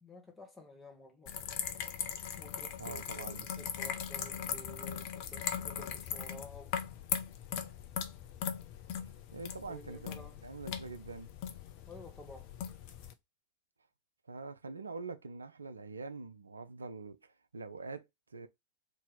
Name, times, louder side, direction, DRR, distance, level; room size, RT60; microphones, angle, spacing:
voice 1, 0.0-1.3 2.4-6.8 9.7-10.4 11.9-12.5, left 1 dB, 10° left, 1.1 m, -52 dB
sound 1, 1.3-13.1, left 9 dB, 45° left, 0.5 m, -40 dB
voice 2, 2.8-3.5 9.3-10.1 10.4-11.3 14.2-18.5, right 4 dB, 75° right, 0.4 m, -44 dB
2.8 x 2.8 x 3.8 m
figure-of-eight pair, 90°, 0 cm